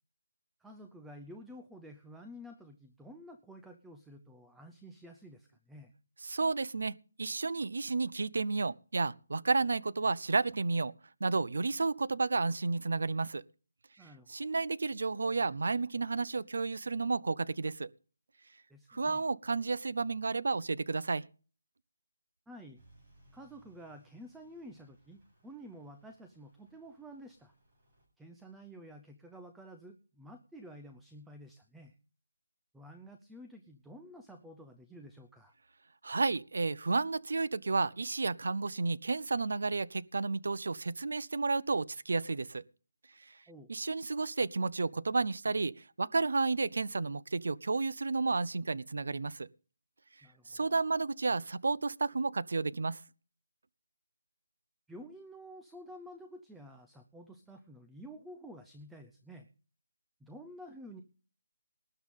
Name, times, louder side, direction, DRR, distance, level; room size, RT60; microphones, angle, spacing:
voice 1, 0.6-5.9 14.0-14.4 18.7-19.2 22.5-22.8 23.3-27.5 28.2-32.0 32.7-35.5 43.5-43.7 50.2-50.7 54.9-59.5 60.2-61.0, equal, ahead, 0.6 m, -51 dB
voice 2, 6.2-10.9 11.2-13.4 14.3-17.9 18.9-21.2 36.0-42.6 43.7-49.5 50.5-53.0, right 3 dB, 60° right, 0.7 m, -32 dB
Truck / Idling, 22.8-28.1, equal, 20° right, 8.0 m, -66 dB
19.5 x 10.0 x 3.8 m
hypercardioid pair, 175°, 0 cm